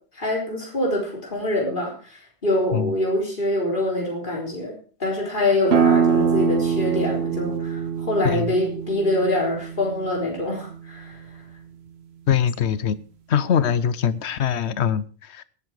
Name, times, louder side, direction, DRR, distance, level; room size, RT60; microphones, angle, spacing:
voice 1, 0.1-4.7 5.0-11.2, left 1 dB, 50° left, 4.2 m, -25 dB
sound 1, 5.7-11.1, right 7 dB, 75° right, 1.3 m, -24 dB
voice 2, 8.2-8.5 12.3-13.0 13.3-15.4, left 8 dB, 85° left, 1.1 m, -22 dB
17.5 x 8.8 x 4.8 m
omnidirectional pair, 1.1 m